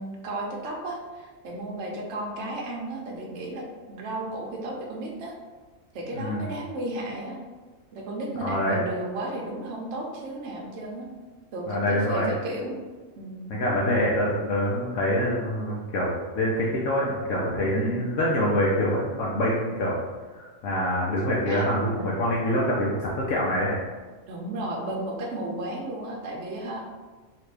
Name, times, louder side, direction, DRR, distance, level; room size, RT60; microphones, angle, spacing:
voice 1, 0.0-5.3 5.9-7.4 7.9-11.1 11.5-12.8 13.2-13.5 17.7-18.0 21.5-21.7 21.9-22.1 24.3-26.8, right 1 dB, 65° right, -1 dB, 0.9 m, -34 dB
voice 2, 6.1-6.5 8.4-8.8 11.7-12.3 13.5-20.0 20.3-23.8, equal, 70° left, -5 dB, 0.9 m, -25 dB
2.9 x 2.5 x 3.2 m, 1.4 s
omnidirectional pair, 1.5 m